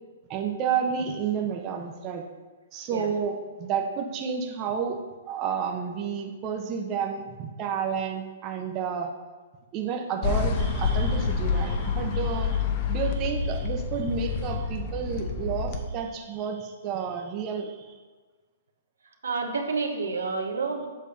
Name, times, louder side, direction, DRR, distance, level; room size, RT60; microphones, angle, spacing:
voice 1, 0.3-2.2 2.7-5.0 5.3-9.1 9.7-18.0, right 7 dB, 35° right, 2 dB, 0.8 m, -31 dB
sound 1, 10.2-15.8, left 5 dB, 45° left, 0.9 m, -27 dB
voice 2, 19.2-20.9, right 4 dB, 85° right, 3 dB, 1.1 m, -29 dB
7.4 x 3.5 x 5.7 m, 1.3 s
hypercardioid pair, 135°, 0 cm